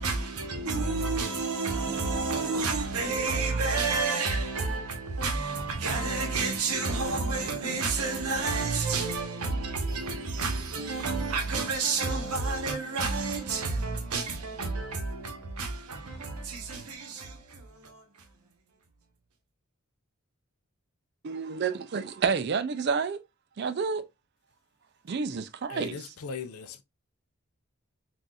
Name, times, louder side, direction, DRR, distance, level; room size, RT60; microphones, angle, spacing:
voice 1, 0.0-18.3, right 4 dB, 90° right, 0.9 m, -30 dB
voice 2, 21.2-23.2 23.6-24.1 25.1-26.0, right 5 dB, 45° right, 0.3 m, -29 dB
voice 3, 25.7-26.8, left 5 dB, 80° left, 0.5 m, -38 dB
4.0 x 2.5 x 2.3 m
head